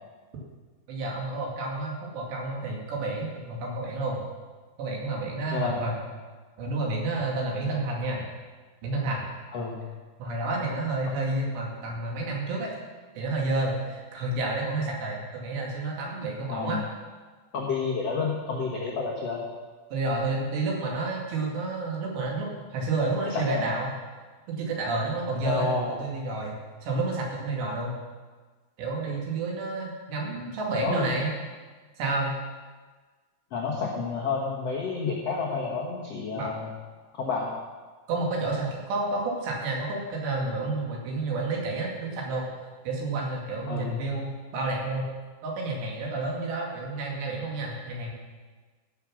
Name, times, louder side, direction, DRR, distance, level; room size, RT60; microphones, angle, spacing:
voice 1, 0.9-4.2 4.8-5.9 6.6-8.2 8.8-9.2 10.2-12.8 13.2-16.8 19.9-23.9 24.5-28.0 28.8-31.3 32.0-32.3 36.4-36.5 38.1-42.5 42.8-45.1 45.4-48.1, right 2 dB, 70° right, -1 dB, 4.4 m, -30 dB
voice 2, 5.5-5.8 9.5-9.8 16.5-16.8 17.5-19.4 23.2-23.7 25.4-26.0 30.8-31.0 33.5-36.7 37.2-37.5 43.7-43.9, left 4 dB, 75° left, -2 dB, 1.4 m, -30 dB
16.0 x 7.3 x 6.3 m, 1.4 s
omnidirectional pair, 5.1 m